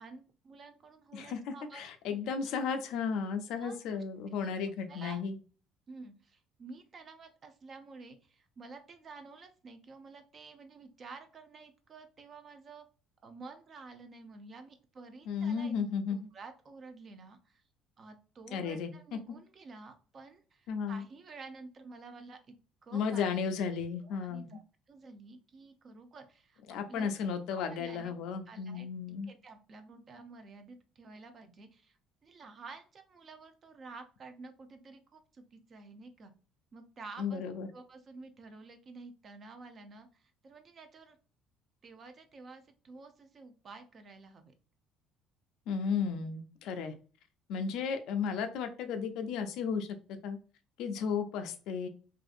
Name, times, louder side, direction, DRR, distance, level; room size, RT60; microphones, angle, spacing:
voice 1, 0.0-2.2 2.6-2.7 3.6-4.0 4.4-4.6 4.9-5.2 5.9-12.8 13.2-15.7 16.1-17.6 18.0-22.5 22.8-23.3 24.0-26.6 26.9-27.1 27.5-28.1 28.5-28.9 29.3-36.3 36.7-37.4 37.7-41.2 41.8-44.5, right 4 dB, 40° right, 7 dB, 0.5 m, -51 dB
voice 2, 1.1-5.4 15.3-16.3 18.5-18.9 20.7-21.0 22.9-24.5 26.7-29.3 37.2-37.7 45.7-46.9 47.5-50.4 50.8-51.9, left 6 dB, 75° left, 7 dB, 0.4 m, -34 dB
2.6 x 2.4 x 2.4 m, 0.37 s
cardioid pair, 100°, 0 cm